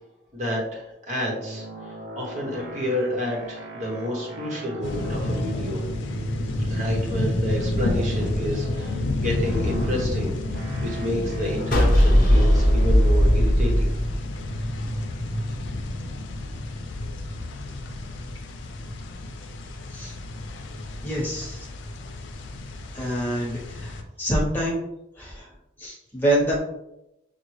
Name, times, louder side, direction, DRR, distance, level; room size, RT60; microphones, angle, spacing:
voice 1, 0.3-5.8 6.7-13.9, left 1 dB, 40° right, -2 dB, 0.9 m, -30 dB
sound 1, 1.4-17.9, right 1 dB, 65° right, 0.6 m, -36 dB
sound 2, 4.8-24.0, left 2 dB, 85° left, 0.5 m, -30 dB
sound 3, 11.7-14.9, equal, 50° left, 0.7 m, -18 dB
voice 2, 21.0-21.7 22.9-24.8 25.2-25.5 25.8-26.6, right 1 dB, 10° left, -4 dB, 0.9 m, -26 dB
6.1 x 2.1 x 3.1 m, 0.87 s
head